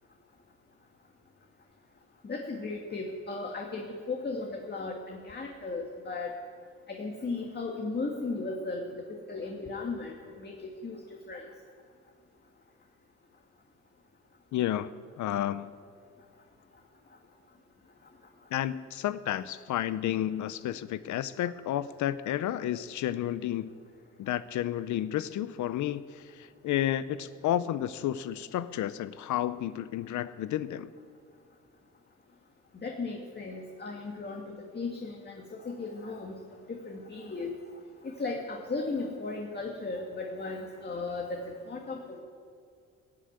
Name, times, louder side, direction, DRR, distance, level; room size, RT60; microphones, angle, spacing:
voice 1, 2.2-6.4 6.9-8.8 9.3-11.0 11.3-11.5 32.8-36.4 36.7-37.5 38.0-42.2, left 3 dB, 35° left, 1 dB, 1.9 m, -36 dB
voice 2, 14.5-15.7 18.5-23.7 24.2-30.9, left 12 dB, 75° left, 15 dB, 0.6 m, -31 dB
15.0 x 7.7 x 9.5 m, 2.4 s
cardioid pair, 90°, 30 cm